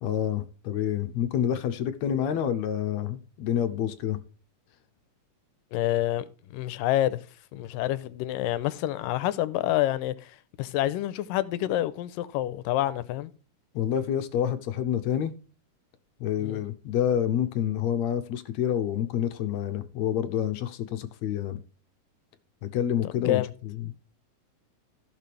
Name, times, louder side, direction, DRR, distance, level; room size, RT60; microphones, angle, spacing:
voice 1, 0.0-4.2 13.7-15.3 16.2-21.6 22.6-23.4 23.8-23.9, left 9 dB, 70° left, 1.8 m, -28 dB
voice 2, 5.7-7.2 7.5-13.3 16.4-16.6 23.1-23.5, left 14 dB, 85° left, 2.4 m, -28 dB
15.5 x 6.8 x 3.3 m
omnidirectional pair, 3.9 m